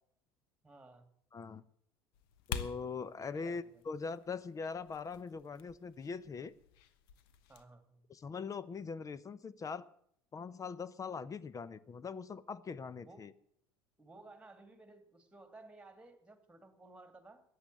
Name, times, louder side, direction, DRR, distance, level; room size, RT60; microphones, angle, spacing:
voice 1, 0.6-1.1 3.3-3.8 7.5-8.1 13.0-13.3 14.0-17.4, right 2 dB, 10° right, 9 dB, 2.5 m, -56 dB
voice 2, 1.3-1.6 2.5-6.5 8.1-9.9 10.3-13.3, left 5 dB, 25° left, 19 dB, 0.7 m, -42 dB
sound 1, 2.1-7.6, left 8 dB, 65° left, 1.1 m, -48 dB
14.0 x 9.5 x 7.9 m, 0.70 s
figure-of-eight pair, 70°, 13 cm